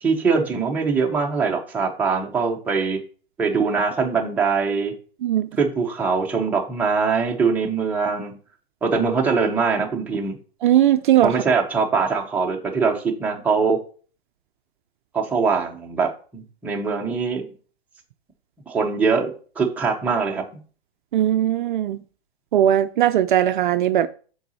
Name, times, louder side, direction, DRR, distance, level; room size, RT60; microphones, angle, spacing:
voice 1, 0.0-3.0 3.4-4.9 5.6-8.3 8.8-10.4 11.2-13.8 15.1-17.5 18.7-20.6, right 5 dB, 5° right, 0.6 m, -22 dB
voice 2, 10.6-11.3 21.1-22.0 22.5-24.1, right 11 dB, 50° right, 0.4 m, -18 dB
5.8 x 3.9 x 4.1 m
hypercardioid pair, 140°, 32 cm